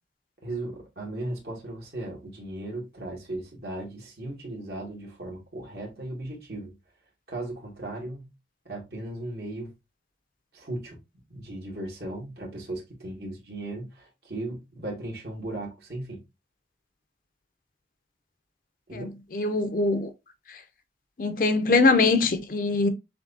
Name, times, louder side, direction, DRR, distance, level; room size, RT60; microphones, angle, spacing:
voice 1, 0.4-6.8 7.3-8.3 8.7-9.7 10.5-11.0 11.3-16.2 18.9-19.1, right 1 dB, 60° right, 2.2 m, -36 dB
voice 2, 18.9-20.1 21.2-22.9, left 3 dB, 50° left, 0.6 m, -23 dB
7.0 x 2.8 x 2.7 m
head